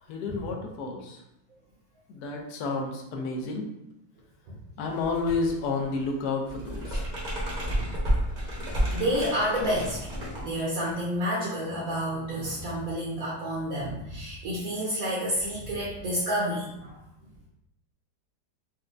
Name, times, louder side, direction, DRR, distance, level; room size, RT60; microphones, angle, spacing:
voice 1, 0.1-1.2 2.1-3.7 4.8-7.0, left 3 dB, 70° left, 1 dB, 1.1 m, -30 dB
sound 1, 4.9-5.5 5.8-11.0, equal, 35° right, 0.8 m, -31 dB
voice 2, 7.8-8.6 8.9-10.0 10.4-17.0, equal, 65° right, -5 dB, 1.0 m, -30 dB
4.1 x 2.2 x 2.5 m, 0.84 s
omnidirectional pair, 1.8 m